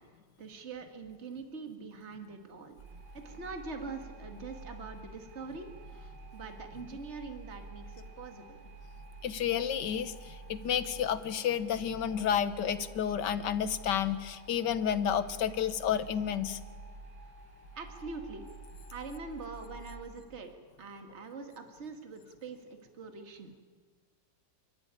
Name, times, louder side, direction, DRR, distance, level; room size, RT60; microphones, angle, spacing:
voice 1, 0.4-2.8 3.1-8.7 17.7-18.5 18.9-20.5 20.8-22.7 22.9-23.6, right 4 dB, 40° right, 5 dB, 2.2 m, -44 dB
sound 1, 2.8-20.0, right 2 dB, 55° right, 4.6 m, -49 dB
voice 2, 9.2-16.6, left 9 dB, 70° left, 12 dB, 1.7 m, -31 dB
29.0 x 13.0 x 9.9 m, 1.5 s
omnidirectional pair, 2.0 m